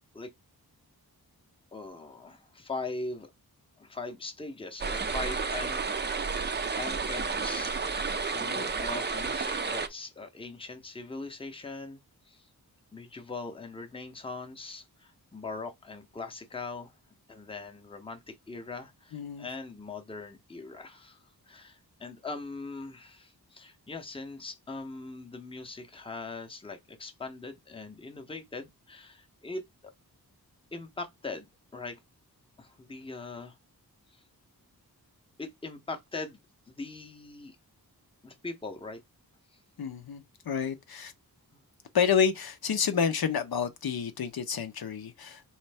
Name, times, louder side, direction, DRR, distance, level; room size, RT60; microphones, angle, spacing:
voice 1, 1.7-3.3 3.8-6.4 6.8-12.5 12.9-16.9 17.3-29.9 30.7-32.0 32.6-33.6 34.1-34.2 35.4-36.4 36.7-37.6 38.2-39.0 39.5-39.6 41.5-41.6, left 3 dB, 15° left, 0.7 m, -41 dB
sound 1, 4.8-9.9, right 4 dB, 30° right, 0.4 m, -31 dB
voice 2, 19.1-19.5 39.8-41.1 41.9-45.4, left 7 dB, 70° left, 0.6 m, -29 dB
4.2 x 3.2 x 3.3 m
wide cardioid pair, 120°, 38 cm